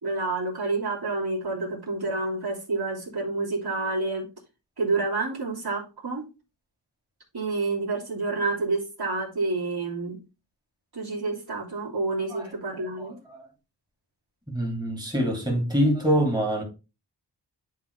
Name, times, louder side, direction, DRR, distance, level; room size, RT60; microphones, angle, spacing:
voice 1, 0.0-4.3 4.8-6.3 7.3-10.2 10.9-13.2, right 3 dB, 60° right, 3.1 m, -29 dB
voice 2, 13.0-13.4 14.5-16.6, equal, 10° right, 2.9 m, -25 dB
10.5 x 3.9 x 3.3 m
wide cardioid pair, 75°, 42 cm